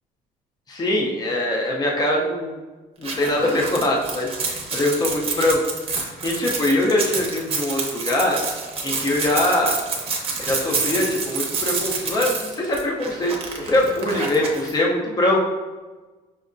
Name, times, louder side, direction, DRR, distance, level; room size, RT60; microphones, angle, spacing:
voice 1, 0.7-2.6 3.0-4.3 4.7-5.6 6.2-8.4 8.8-9.8 10.4-15.4, left 1 dB, 25° left, -1 dB, 0.6 m, -22 dB
sound 1, 3.0-14.7, right 4 dB, 35° right, 0.7 m, -28 dB
5.4 x 2.1 x 2.5 m, 1.2 s
cardioid pair, 110°, 17 cm